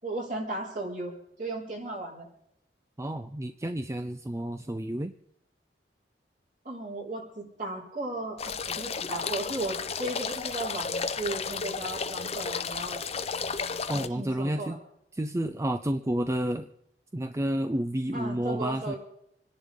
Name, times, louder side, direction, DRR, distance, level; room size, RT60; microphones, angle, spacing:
voice 1, 0.0-2.3 6.6-13.0 13.9-14.8 18.1-19.0, right 2 dB, 50° right, -2 dB, 4.7 m, -36 dB
voice 2, 3.0-5.1 13.9-14.8 15.1-16.7 17.1-19.0, right 1 dB, 15° right, 9 dB, 0.5 m, -30 dB
sound 1, 8.4-14.1, left 5 dB, 35° left, 0.7 m, -33 dB
27.0 x 10.5 x 3.7 m, 0.77 s
head